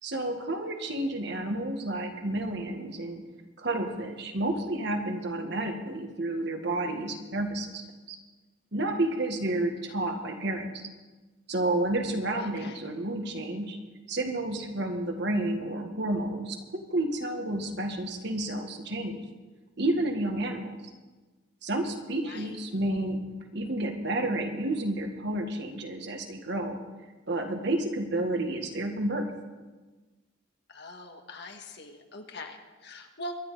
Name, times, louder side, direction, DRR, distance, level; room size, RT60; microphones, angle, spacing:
voice 1, 0.0-3.2 3.6-7.8 8.1-8.2 8.7-10.8 11.5-13.8 14.1-19.2 19.8-20.8 21.6-23.2 23.5-26.8 27.3-29.3, right 1 dB, 60° right, 4 dB, 1.8 m, -30 dB
voice 2, 12.4-12.8 22.2-22.5 30.7-33.3, left 1 dB, 60° left, 4 dB, 1.7 m, -42 dB
23.5 x 9.9 x 4.9 m, 1.2 s
head